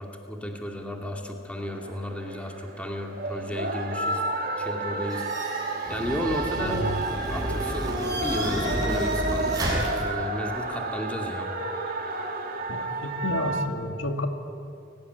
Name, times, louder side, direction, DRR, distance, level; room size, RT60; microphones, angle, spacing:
voice 1, 0.0-4.2 4.6-5.5 5.9-6.9 7.3-11.5, left 1 dB, 5° left, 1 dB, 2.6 m, -33 dB
sound 1, 1.6-13.7, right 2 dB, 50° right, 2.4 m, -31 dB
sound 2, 5.1-10.0, right 1 dB, 20° right, 7.1 m, -31 dB
voice 2, 6.6-6.9 12.7-14.3, left 1 dB, 85° left, 4 dB, 2.4 m, -31 dB
29.0 x 18.5 x 9.7 m, 2.5 s
head